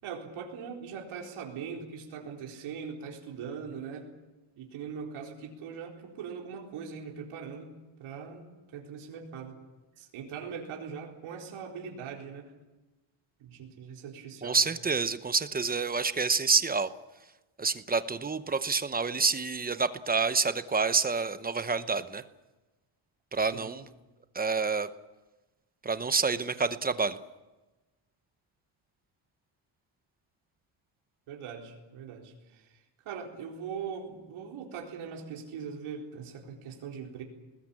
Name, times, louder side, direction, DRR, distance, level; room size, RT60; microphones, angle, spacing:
voice 1, 0.0-4.1 4.6-8.5 8.7-9.6 10.0-12.5 13.4-14.6 23.4-23.7 31.3-37.2, right 6 dB, 85° right, 0 dB, 4.2 m, -41 dB
voice 2, 14.4-16.9 17.6-22.2 23.3-23.8 24.3-24.9 25.8-27.2, right 4 dB, 20° right, 12 dB, 0.8 m, -28 dB
21.5 x 20.0 x 8.6 m, 1.1 s
cardioid pair, 150°, 48 cm